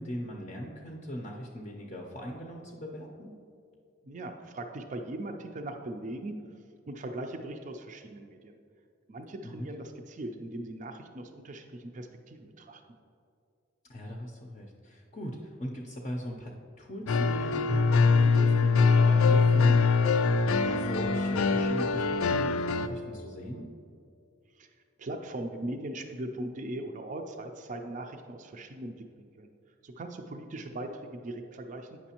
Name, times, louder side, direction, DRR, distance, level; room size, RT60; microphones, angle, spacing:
voice 1, 0.0-3.3 9.4-9.7 13.9-20.2 20.5-23.7, equal, 35° left, 0 dB, 0.5 m, -39 dB
voice 2, 4.0-6.4 6.9-8.6 9.1-12.8 24.5-24.7 25.0-29.5 29.8-32.0, right 1 dB, 40° right, 4 dB, 0.4 m, -39 dB
sound 1, 17.1-22.9, left 4 dB, 90° left, 0.4 m, -23 dB
8.8 x 6.1 x 2.9 m, 2.4 s
head